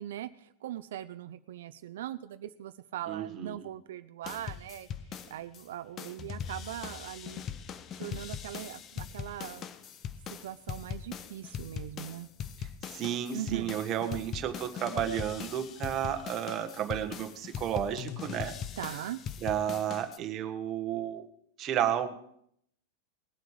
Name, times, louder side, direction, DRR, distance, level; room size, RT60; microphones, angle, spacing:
voice 1, 0.0-4.9 5.3-7.5 8.0-9.7 10.4-12.3 13.3-13.7 18.8-19.2, right 12 dB, 75° right, 11 dB, 0.6 m, -40 dB
voice 2, 3.1-3.7 12.6-18.5 18.9-19.1 19.4-21.3 21.6-22.1, right 10 dB, 25° right, 5 dB, 1.4 m, -32 dB
sound 1, 4.2-5.6 6.0-20.2, left 8 dB, 25° left, 0.7 m, -41 dB
20.0 x 8.0 x 5.0 m, 0.69 s
supercardioid pair, 155°, 0 cm